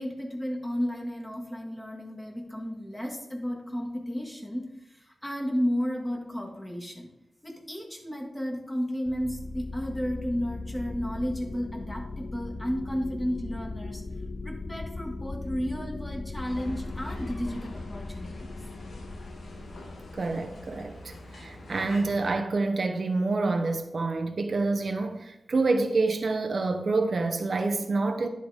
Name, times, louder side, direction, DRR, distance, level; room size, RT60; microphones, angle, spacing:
voice 1, 0.0-7.1 7.4-14.0 14.4-18.5, equal, 15° left, 1.8 m, -33 dB
sound 1, 9.0-21.3, left 3 dB, 35° left, 0.4 m, -39 dB
sound 2, 16.5-22.3, left 1 dB, 90° left, 1.4 m, -45 dB
voice 2, 20.1-28.3, right 3 dB, 60° right, 0.7 m, -27 dB
10.5 x 3.9 x 4.9 m
wide cardioid pair, 90°, 0 cm